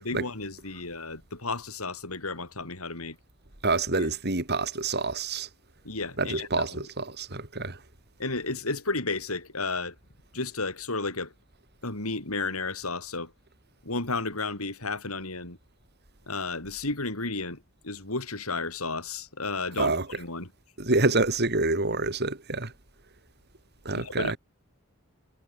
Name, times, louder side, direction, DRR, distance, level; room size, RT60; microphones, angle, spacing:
voice 1, 0.0-3.2 3.9-4.1 5.8-6.9 8.2-10.0 10.3-11.3 11.8-13.3 13.8-15.6 16.3-20.5 23.9-24.4, left 3 dB, 85° left, 5.5 m, -33 dB
voice 2, 3.6-5.5 6.2-7.8 19.8-20.1 20.8-22.7 23.9-24.4, right 3 dB, 50° right, 3.9 m, -27 dB
head